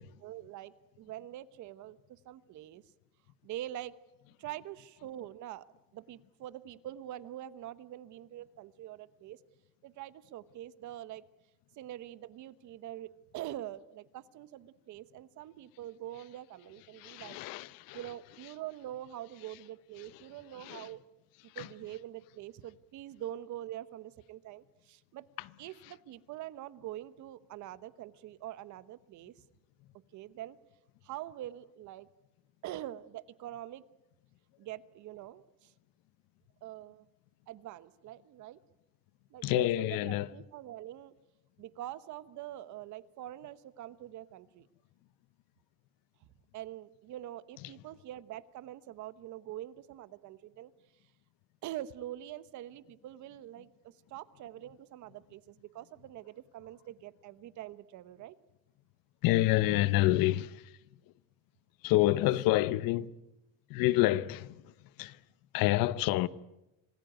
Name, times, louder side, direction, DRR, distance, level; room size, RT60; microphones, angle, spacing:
voice 1, 0.2-2.8 3.4-3.9 4.4-5.7 5.9-9.4 9.8-11.2 11.8-17.4 17.9-21.0 21.4-25.2 25.6-29.3 30.1-30.6 31.0-32.1 32.6-33.8 34.6-35.7 36.6-37.1 37.5-38.6 39.3-41.1 41.6-44.7 46.5-50.7 51.6-58.4, right 13 dB, 60° right, 1.1 m, -44 dB
voice 2, 17.0-18.0 20.7-20.8 21.6-21.7 39.4-40.3 59.2-60.5 61.8-63.1 63.7-64.5 65.0-65.1 65.5-66.3, left 16 dB, 90° left, 1.0 m, -27 dB
27.0 x 19.5 x 9.2 m
cardioid pair, 165°, 33 cm